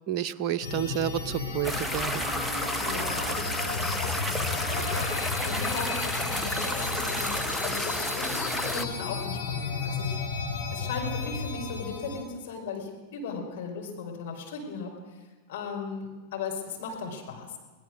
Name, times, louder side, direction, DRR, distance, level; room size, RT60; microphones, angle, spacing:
voice 1, 0.1-2.2, right 10 dB, 35° right, 10 dB, 0.8 m, -30 dB
sound 1, 0.6-12.2, left 4 dB, 75° left, 4.9 m, -33 dB
sound 2, 1.6-8.8, left 1 dB, ahead, 1.0 m, -31 dB
voice 2, 2.8-4.0 4.3-4.6 4.8-7.3 7.6-10.2 10.7-15.0 15.5-17.6, left 4 dB, 55° left, 1 dB, 5.3 m, -37 dB
23.0 x 17.5 x 6.6 m, 1.2 s
figure-of-eight pair, 90°, 0 cm